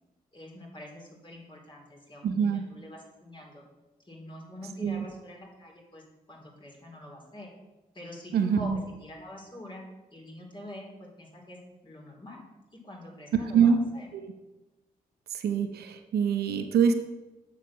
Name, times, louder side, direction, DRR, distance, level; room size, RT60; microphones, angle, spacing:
voice 1, 0.3-3.6 4.1-6.0 6.3-7.5 7.9-9.8 10.1-12.4 12.7-14.1, left 1 dB, 30° left, -2 dB, 3.7 m, -45 dB
voice 2, 2.2-2.6 4.8-5.0 8.3-8.8 13.5-13.8 14.1-14.2 15.3-16.9, right 7 dB, 90° right, 7 dB, 0.8 m, -24 dB
7.3 x 6.7 x 6.1 m, 1.1 s
cardioid pair, 55°, 16 cm